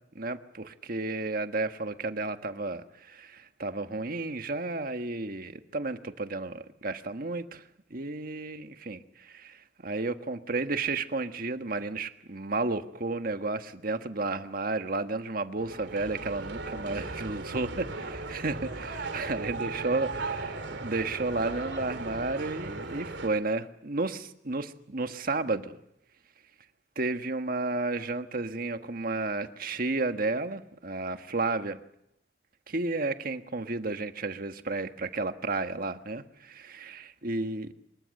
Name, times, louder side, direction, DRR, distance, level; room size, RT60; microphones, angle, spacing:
voice 1, 0.1-7.6 7.9-25.8 26.9-31.8 32.7-37.7, right 3 dB, 50° right, 1.5 m, -32 dB
sound 1, 15.6-23.3, right 3 dB, 75° right, 2.8 m, -37 dB
25.0 x 21.5 x 7.8 m
head